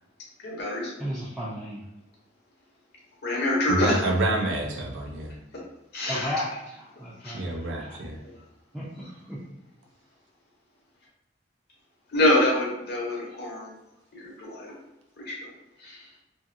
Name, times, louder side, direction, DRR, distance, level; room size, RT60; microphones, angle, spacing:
voice 1, 0.4-0.9 3.2-4.0 5.9-6.3 7.2-7.4 12.1-13.7 14.1-14.8 15.2-15.5 15.8-16.0, left 1 dB, 55° left, -3 dB, 0.7 m, -26 dB
voice 2, 1.0-1.8 6.1-8.0 8.7-9.5, equal, 5° right, -7 dB, 0.4 m, -35 dB
voice 3, 3.7-5.4 7.3-8.2, right 2 dB, 80° right, 1 dB, 0.5 m, -27 dB
2.6 x 2.6 x 2.5 m, 0.91 s
head